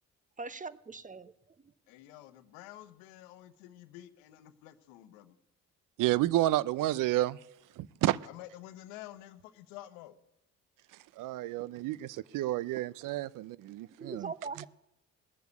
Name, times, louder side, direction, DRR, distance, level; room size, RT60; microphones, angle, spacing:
voice 1, 0.4-1.3 1.6-1.7 14.0-14.7, right 4 dB, 25° right, 0.8 m, -41 dB
voice 2, 1.9-5.3 8.2-10.2, left 14 dB, 90° left, 1.0 m, -49 dB
voice 3, 6.0-7.4 7.8-8.2 11.2-14.3, right 15 dB, 65° right, 0.6 m, -30 dB
18.5 x 6.9 x 8.2 m
supercardioid pair, 65°, 34 cm